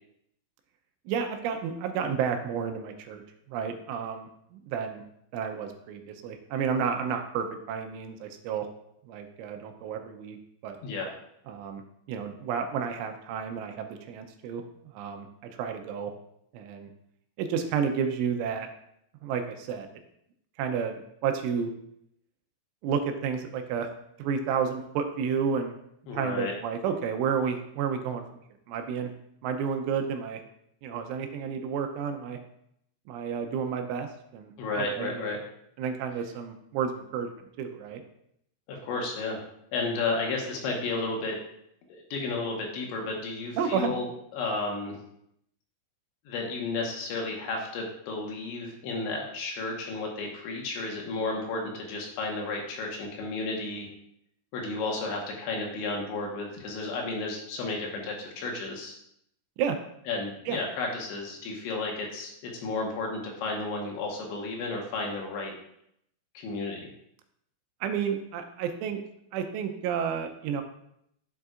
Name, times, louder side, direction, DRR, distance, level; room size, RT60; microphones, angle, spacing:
voice 1, 1.1-3.2 3.5-5.0 5.3-8.7 9.1-10.4 10.6-10.8 11.5-11.8 12.1-14.6 14.9-16.1 16.5-16.9 17.4-18.7 19.2-19.9 20.6-21.7 22.8-23.9 24.2-25.8 26.1-28.2 28.7-29.1 29.4-30.4 30.8-32.4 33.1-35.3 35.8-37.3 37.6-38.0 43.6-43.9 59.6-59.8 60.5-60.6 67.8-69.0 69.3-70.6, right 7 dB, 80° right, 5 dB, 3.1 m, -31 dB
voice 2, 26.1-26.5 34.6-35.4 38.7-39.4 39.7-41.4 41.9-44.1 44.3-45.0 46.3-53.9 54.5-59.0 60.1-65.5 66.4-66.8, left 3 dB, 70° left, 0 dB, 3.5 m, -32 dB
11.0 x 8.0 x 2.5 m, 0.74 s
omnidirectional pair, 5.7 m